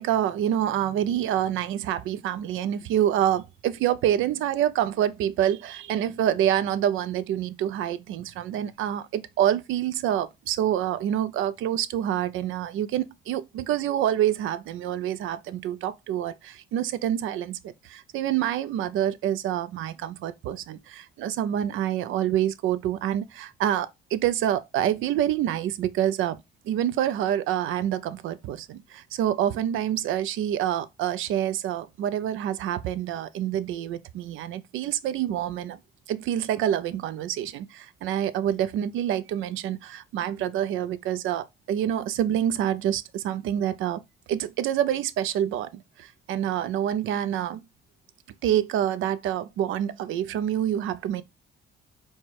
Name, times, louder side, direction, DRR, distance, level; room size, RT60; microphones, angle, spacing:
voice 1, 0.0-26.4 26.6-35.8 36.1-44.0 44.3-47.6 48.4-51.2, right 11 dB, 85° right, 0.5 m, -27 dB
4.3 x 2.2 x 4.5 m
cardioid pair, 90°, 20 cm